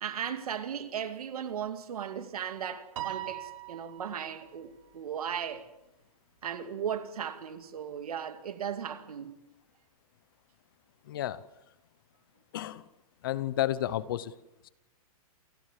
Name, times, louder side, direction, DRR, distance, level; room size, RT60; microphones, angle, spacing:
voice 1, 0.0-5.7 6.4-9.4, right 8 dB, 75° right, 2.4 m, -36 dB
Piano, 3.0-4.5, right 14 dB, 55° right, 1.6 m, -40 dB
voice 2, 11.0-11.4 12.5-12.9 13.2-14.3 14.6-14.7, left 13 dB, 35° left, 0.8 m, -31 dB
28.0 x 14.5 x 7.4 m
hypercardioid pair, 175°, 19 cm